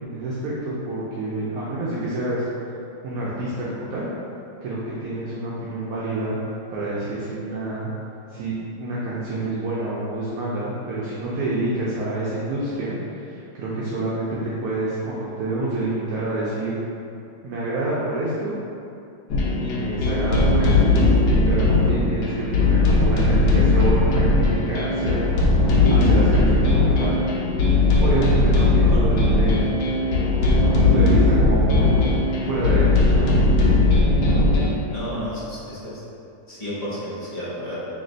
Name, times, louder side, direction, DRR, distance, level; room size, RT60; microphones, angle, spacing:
voice 1, 0.0-2.4 3.0-4.1 4.6-6.4 6.7-7.9 8.3-16.8 17.4-18.5 19.6-20.7 21.5-25.3 25.9-27.2 28.0-29.9 30.8-32.0 32.4-33.4, right 2 dB, 70° right, -8 dB, 1.1 m, -27 dB
sound 1, 19.3-34.8, left 2 dB, 90° left, 1.3 m, -18 dB
voice 2, 34.9-35.9 36.5-38.0, equal, 30° left, -9 dB, 0.8 m, -32 dB
3.3 x 3.1 x 3.8 m, 2.8 s
omnidirectional pair, 1.7 m